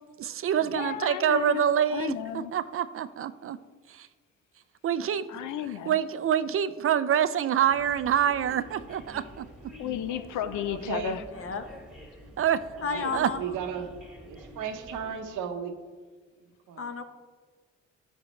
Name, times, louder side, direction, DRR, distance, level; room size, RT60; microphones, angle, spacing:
voice 1, 0.2-3.6 3.9-4.1 4.8-5.3 5.9-9.5 12.4-12.7 13.1-13.3, right 9 dB, 45° right, 0.4 m, -26 dB
voice 2, 0.7-2.5 5.3-6.0 9.8-11.2, left 10 dB, 80° left, 0.6 m, -33 dB
sound 1, 7.6-15.2, equal, 5° right, 1.4 m, -47 dB
voice 3, 10.7-11.2 12.8-13.9 14.3-15.7 16.7-16.9, right 7 dB, 85° right, 1.0 m, -35 dB
voice 4, 11.3-11.7 12.8-13.4 16.8-17.0, left 5 dB, 45° left, 1.0 m, -32 dB
10.5 x 8.1 x 3.2 m
cardioid pair, 90°, 30 cm